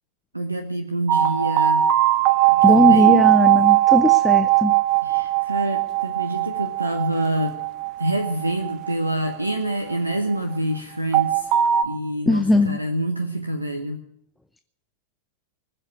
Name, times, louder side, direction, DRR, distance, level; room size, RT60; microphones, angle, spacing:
voice 1, 0.3-1.9 2.5-3.2 5.0-7.6 8.0-11.5 11.8-14.0, right 1 dB, 85° right, 7 dB, 1.1 m, -26 dB
sound 1, 1.1-10.2 11.1-11.8, right 14 dB, 40° right, 1.1 m, -19 dB
voice 2, 2.6-4.8 12.3-12.8, left 2 dB, 5° left, 11 dB, 0.6 m, -19 dB
19.5 x 7.9 x 8.7 m, 0.72 s
figure-of-eight pair, 90°, 0 cm